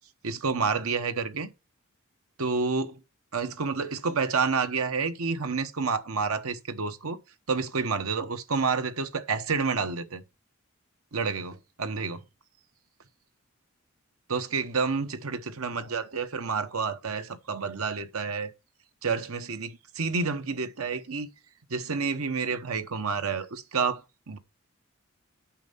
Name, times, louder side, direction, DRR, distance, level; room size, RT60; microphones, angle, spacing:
voice 1, 0.2-1.5 2.4-3.0 3.3-7.2 7.5-10.2 11.1-12.2 14.3-18.5 19.0-21.3 21.7-24.0 24.3-24.4, right 5 dB, 85° right, 1.0 m, -29 dB
8.7 x 5.4 x 5.5 m
head